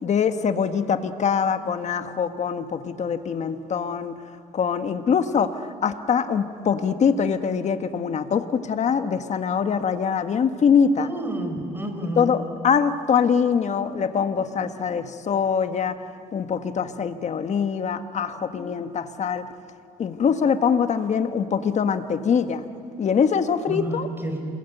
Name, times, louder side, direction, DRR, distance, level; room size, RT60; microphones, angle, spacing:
voice 1, 0.0-4.1 4.5-11.1 12.2-16.0 16.3-19.4 20.0-22.6 23.0-24.1, left 6 dB, 45° left, 9 dB, 1.6 m, -23 dB
voice 2, 11.0-12.3 23.7-24.4, right 1 dB, 10° right, 4 dB, 5.6 m, -30 dB
27.5 x 22.0 x 9.3 m, 2.5 s
cardioid pair, 110°, 17 cm